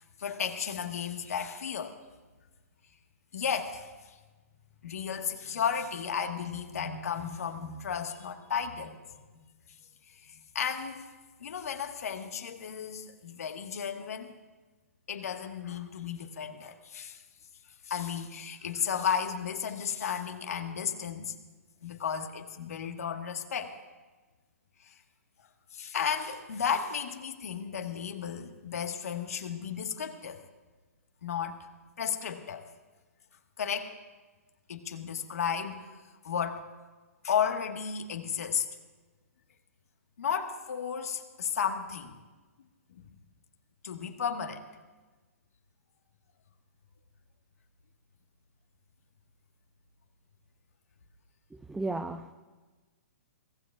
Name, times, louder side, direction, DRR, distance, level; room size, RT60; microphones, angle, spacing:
voice 1, 0.2-2.0 3.3-4.2 4.8-9.0 10.2-11.1 11.4-14.4 15.1-17.2 17.8-21.3 21.8-23.7 24.8-25.0 25.7-30.4 31.2-31.6 32.0-32.7 33.6-33.9 34.7-35.9 36.2-36.7 37.2-38.7 40.2-42.1 42.9-43.0 43.8-44.7, left 7 dB, 70° left, 5 dB, 1.5 m, -33 dB
voice 2, 51.5-52.3, right 2 dB, 5° right, 9 dB, 0.4 m, -34 dB
22.5 x 16.5 x 2.4 m, 1.3 s
hypercardioid pair, 130°, 8 cm